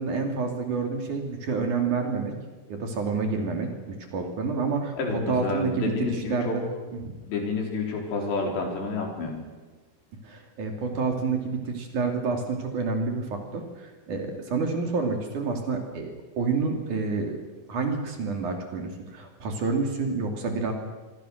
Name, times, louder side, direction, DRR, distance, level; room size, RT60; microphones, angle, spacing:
voice 1, 0.0-2.3 2.7-5.0 5.3-6.6 7.0-7.1 10.2-16.1 16.4-17.4 17.7-20.7, right 4 dB, 50° right, 4 dB, 3.8 m, -28 dB
voice 2, 4.9-6.6 7.2-9.4, left 3 dB, 85° left, 1 dB, 6.4 m, -29 dB
26.5 x 22.5 x 6.6 m, 1.3 s
omnidirectional pair, 4.9 m